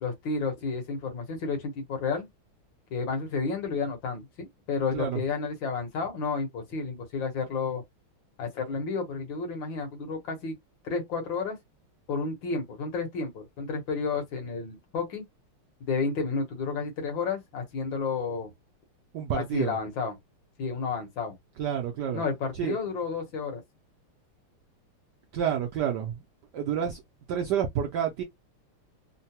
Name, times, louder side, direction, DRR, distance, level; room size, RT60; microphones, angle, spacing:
voice 1, 0.0-2.3 2.9-7.8 8.4-10.6 10.8-11.6 12.1-15.2 15.9-18.5 19.3-20.2 20.6-21.3 22.1-23.6, left 4 dB, 65° left, 1.7 m, -31 dB
voice 2, 19.1-19.8 21.6-22.2 22.6-22.8 25.3-26.2 26.5-27.0 27.3-28.2, right 8 dB, 75° right, 0.9 m, -29 dB
3.8 x 2.0 x 2.8 m
omnidirectional pair, 2.3 m